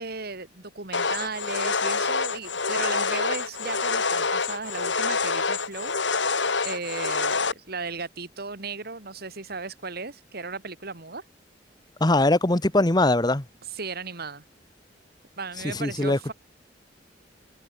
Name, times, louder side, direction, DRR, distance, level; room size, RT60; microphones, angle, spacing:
voice 1, 0.0-11.2 13.7-14.4 15.4-16.3, right 4 dB, 55° right, 3.5 m, -36 dB
sound 1, 0.9-7.5, left 4 dB, 75° left, 4.6 m, -26 dB
voice 2, 12.0-13.4 15.6-16.3, left 2 dB, 25° left, 1.4 m, -21 dB
head